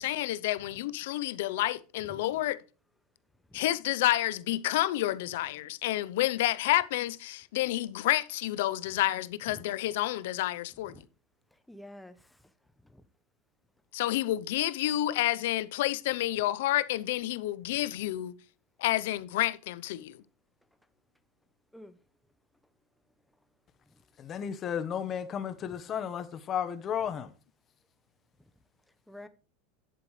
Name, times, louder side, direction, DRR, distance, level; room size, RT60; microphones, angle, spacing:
voice 1, 0.0-2.6 3.5-11.0 13.9-18.3 18.8-20.2, left 15 dB, 80° left, 0.7 m, -29 dB
voice 2, 11.7-12.2 12.8-13.0 21.7-22.0 29.1-29.3, left 1 dB, 5° left, 0.8 m, -48 dB
voice 3, 24.2-27.3, left 8 dB, 30° left, 1.2 m, -33 dB
10.5 x 7.9 x 3.2 m
supercardioid pair, 130°, 0 cm